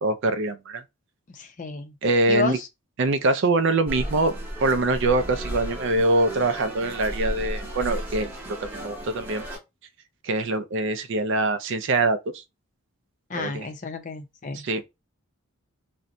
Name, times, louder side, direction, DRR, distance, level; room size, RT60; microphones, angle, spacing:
voice 1, 0.0-0.8 2.0-2.6 3.0-4.4 4.6-9.4 10.2-12.2 13.4-13.7 14.5-14.9, right 2 dB, 55° right, 0.4 m, -24 dB
voice 2, 1.3-1.9 2.3-2.7 13.3-14.6, left 4 dB, 35° left, 0.5 m, -31 dB
sound 1, 3.9-9.6, equal, 10° right, 0.8 m, -34 dB
sound 2, 3.9-8.9, right 3 dB, 85° right, 1.0 m, -47 dB
2.6 x 2.2 x 3.8 m
head